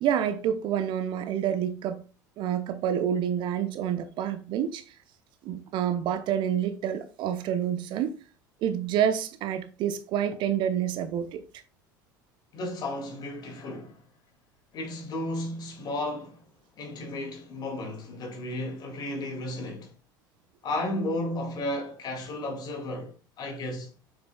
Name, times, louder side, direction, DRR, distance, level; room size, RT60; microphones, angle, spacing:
voice 1, 0.0-2.0 2.4-4.9 5.4-8.1 8.6-11.4, right 9 dB, 45° right, 0.8 m, -28 dB
voice 2, 12.5-14.0 14.7-16.4 16.8-19.9 20.6-23.9, left 1 dB, 40° left, 2.2 m, -33 dB
7.1 x 6.3 x 2.3 m
figure-of-eight pair, 70°, 11 cm